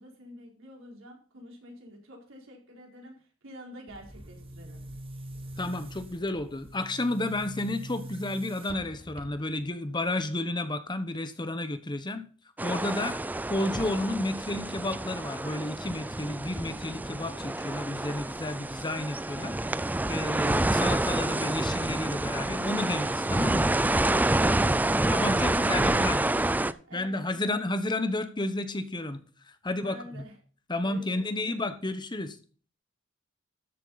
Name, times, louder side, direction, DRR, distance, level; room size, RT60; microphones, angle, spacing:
voice 1, 0.0-4.8 25.5-27.6 29.6-30.4 30.8-31.6, equal, 65° right, 0 dB, 4.5 m, -47 dB
Boom, 3.9-9.7, right 1 dB, 25° right, 1.6 m, -43 dB
voice 2, 5.6-12.2 12.6-13.2 13.5-23.7 25.1-26.2 26.9-29.2 29.5-30.2 30.7-32.4, left 2 dB, 20° left, 10 dB, 1.0 m, -31 dB
sound 1, 12.6-26.7, right 1 dB, 10° right, 0.4 m, -28 dB
13.0 x 8.0 x 4.0 m, 0.40 s
head